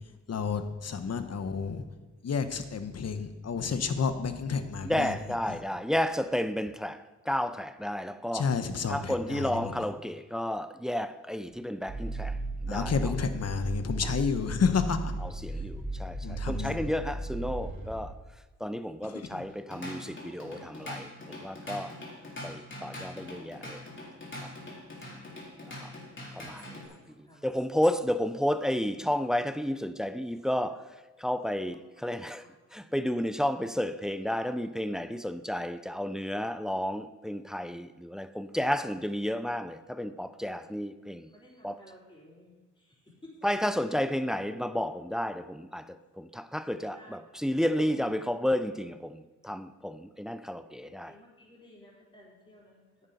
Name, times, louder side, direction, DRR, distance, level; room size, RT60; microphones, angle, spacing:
voice 1, 0.3-1.8 2.2-5.2 5.5-5.6 8.3-9.9 12.7-15.1 16.2-16.9 19.0-19.5, left 5 dB, 55° left, 1.1 m, -31 dB
voice 2, 4.9-8.5 8.9-12.3 12.7-12.9 15.4-18.1 18.6-21.1 21.4-21.9 22.4-23.8 26.4-26.6 27.4-30.8 31.2-32.4 32.7-41.2 41.6-41.8 43.4-45.8 46.2-49.2 49.4-51.1, equal, ahead, 0.5 m, -31 dB
sound 1, 11.9-18.1, right 2 dB, 30° right, 3.6 m, -35 dB
Drum kit / Drum, 19.5-26.9, left 1 dB, 40° left, 3.7 m, -43 dB
voice 3, 26.3-27.0 27.3-27.4 41.3-42.5 46.9-47.1 51.1-52.8, equal, 15° left, 4.2 m, -55 dB
9.9 x 8.8 x 5.3 m
cardioid pair, 65°, 30 cm